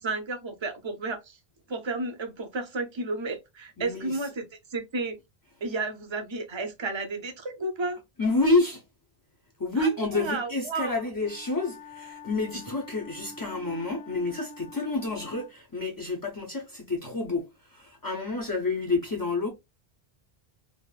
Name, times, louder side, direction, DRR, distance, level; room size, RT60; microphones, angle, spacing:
voice 1, 0.0-1.4 1.7-4.4 4.7-5.2 5.6-8.0 9.8-11.0, right 3 dB, 30° right, 0.6 m, -32 dB
voice 2, 3.8-4.3 8.2-8.8 9.6-19.5, left 3 dB, 25° left, 0.5 m, -29 dB
Wind instrument woodwind instrument, 11.2-15.6, left 3 dB, 90° left, 0.9 m, -46 dB
3.4 x 2.5 x 2.3 m
omnidirectional pair, 1.1 m